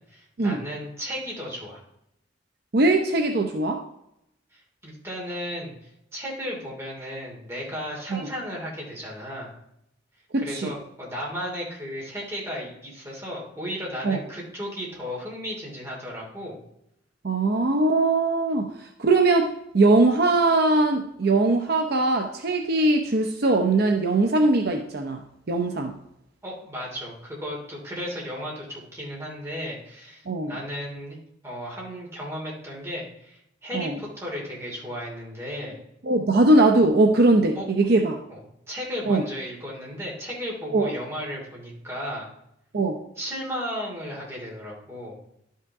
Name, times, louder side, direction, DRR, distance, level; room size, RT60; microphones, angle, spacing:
voice 1, 0.0-1.8 4.5-9.5 10.4-16.6 26.4-31.2 31.4-35.8 37.5-37.7 38.3-38.4 38.7-42.3 43.2-45.2, equal, 15° right, -3 dB, 2.7 m, -35 dB
voice 2, 2.7-3.8 8.1-8.3 10.3-10.7 14.0-14.2 17.2-25.2 25.5-25.9 30.3-30.6 33.7-34.0 36.0-38.2 39.1-39.2 40.7-40.9 42.7-43.0, right 2 dB, 55° right, 4 dB, 0.7 m, -21 dB
11.5 x 5.7 x 3.5 m, 0.80 s
head